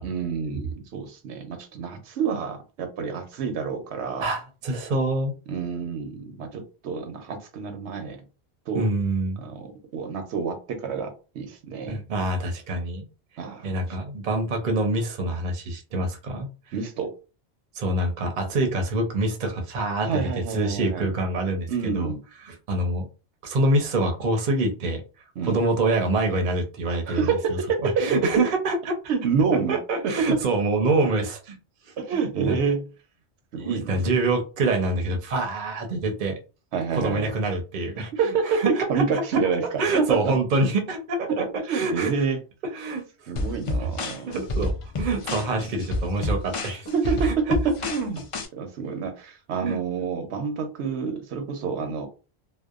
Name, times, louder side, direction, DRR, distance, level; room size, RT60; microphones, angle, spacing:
voice 1, 0.0-4.3 5.5-8.2 8.7-8.9 9.4-9.7 9.9-12.0 13.4-13.7 16.7-17.1 20.0-21.1 21.7-22.2 25.4-25.6 27.1-28.3 29.1-29.8 30.0-30.4 32.0-32.9 33.5-34.2 36.7-37.3 38.2-40.3 41.3-42.4 43.3-44.3 45.6-45.7 46.9-48.2 48.5-52.1, right 5 dB, 80° right, 6 dB, 0.9 m, -27 dB
voice 2, 4.2-5.3 8.7-9.4 11.9-13.1 13.6-16.5 17.7-22.1 22.5-23.1 23.4-25.0 25.4-29.0 29.5-31.6 31.9-32.0 32.5-32.6 33.6-36.4 36.9-38.1 38.5-39.2 39.8-42.1 42.7-43.0 44.3-47.6 49.6-49.8, right 2 dB, 50° right, 3 dB, 0.6 m, -26 dB
sound 1, 43.4-48.5, left 2 dB, 60° left, 0.3 m, -29 dB
2.7 x 2.1 x 2.3 m, 0.33 s
omnidirectional pair, 1.1 m